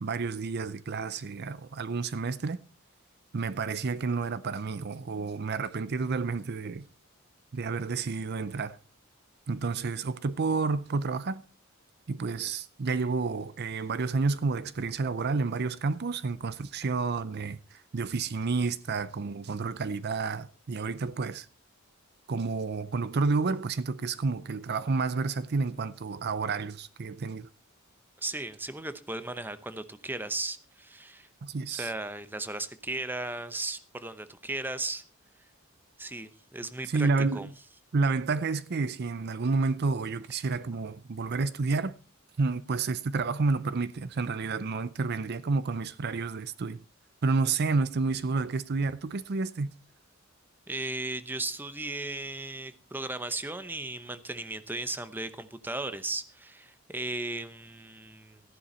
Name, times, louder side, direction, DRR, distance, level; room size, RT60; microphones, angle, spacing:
voice 1, 0.0-2.6 3.3-6.9 7.5-8.8 9.5-11.4 12.1-21.5 22.3-27.5 31.4-31.9 36.9-37.5 37.9-41.9 42.4-46.8 47.2-49.7, right 4 dB, 50° right, 0.5 m, -30 dB
voice 2, 28.2-31.3 31.7-35.0 36.0-37.5 50.7-58.4, right 2 dB, 10° right, 0.8 m, -36 dB
14.0 x 11.0 x 4.4 m
head